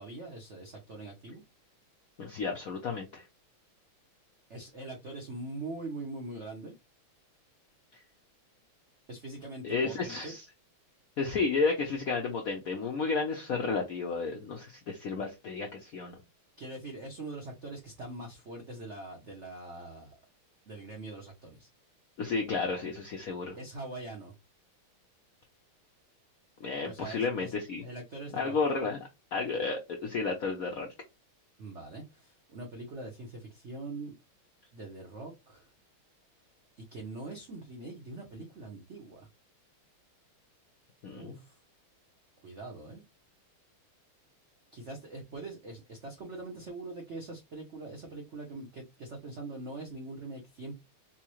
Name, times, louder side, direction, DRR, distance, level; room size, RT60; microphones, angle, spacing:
voice 1, 0.0-1.4 4.5-6.7 9.1-10.3 16.6-20.2 20.7-21.7 23.6-24.3 26.8-27.5 27.8-28.6 31.6-34.2 34.7-35.7 36.8-39.3 41.2-41.6 42.4-43.0 44.7-50.8, right 2 dB, 75° right, 0.6 m, -43 dB
voice 2, 2.2-3.3 7.9-8.0 9.6-10.4 11.2-16.2 22.2-23.6 26.6-27.8 28.3-29.0 29.3-30.9 41.0-41.4, left 4 dB, 75° left, 0.8 m, -32 dB
4.5 x 2.1 x 3.0 m
omnidirectional pair, 2.3 m